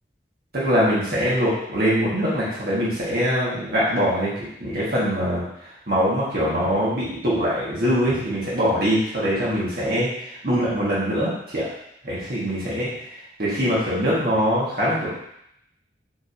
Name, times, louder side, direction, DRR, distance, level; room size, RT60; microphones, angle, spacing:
voice 1, 0.5-5.4 5.9-11.6 12.0-12.9 13.4-15.1, equal, 60° right, -8 dB, 1.6 m, -23 dB
4.6 x 3.7 x 2.6 m, 0.75 s
head